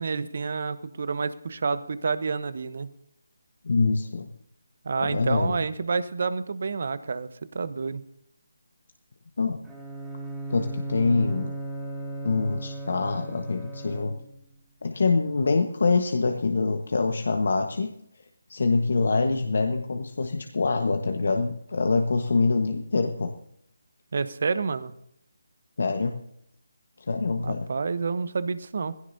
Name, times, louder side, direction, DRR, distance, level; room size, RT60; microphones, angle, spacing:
voice 1, 0.0-2.9 4.8-7.3 7.5-8.0 24.1-24.9 27.4-28.9, right 4 dB, 55° right, 14 dB, 1.0 m, -29 dB
voice 2, 3.6-4.3 5.0-5.6 9.4-9.6 10.5-11.5 12.2-14.2 14.8-17.9 18.5-23.3 25.8-26.1 27.1-27.7, left 4 dB, 60° left, 5 dB, 1.3 m, -25 dB
Bowed string instrument, 9.6-14.5, right 2 dB, 5° right, 3.5 m, -36 dB
18.0 x 16.5 x 2.8 m, 0.73 s
figure-of-eight pair, 155°, 0 cm